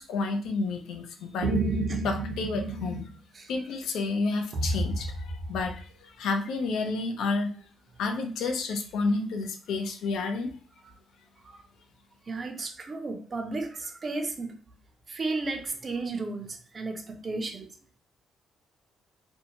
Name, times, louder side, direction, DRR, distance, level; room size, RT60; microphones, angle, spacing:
voice 1, 0.0-1.5 2.0-3.1 3.5-7.5 8.0-10.5, left 3 dB, 80° left, 0.5 m, -30 dB
sound 1, 1.4-3.1 4.5-5.8, right 2 dB, 75° right, 0.8 m, -30 dB
voice 2, 12.3-14.6 15.1-17.7, right 3 dB, 35° right, 0.5 m, -34 dB
2.6 x 2.1 x 2.8 m
cardioid pair, 90°, 0 cm